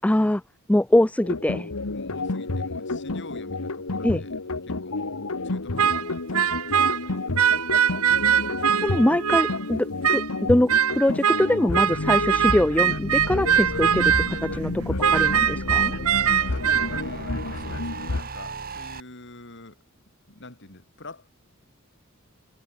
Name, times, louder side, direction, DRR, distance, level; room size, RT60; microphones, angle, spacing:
voice 1, 0.0-0.4 0.7-1.7 4.0-4.2 8.8-15.9, left 1 dB, 5° left, 0.4 m, -23 dB
sound 1, 1.2-18.2, left 2 dB, 80° left, 1.4 m, -30 dB
voice 2, 1.9-4.3 4.6-5.2 5.4-7.4 16.2-19.8 20.3-21.3, left 2 dB, 55° left, 5.0 m, -44 dB
sound 2, 5.8-7.1 7.4-9.6 10.0-10.3 10.7-14.6 15.0-17.0, right 8 dB, 90° right, 0.9 m, -22 dB
sound 3, 12.9-19.0, right 2 dB, 40° right, 4.9 m, -38 dB
head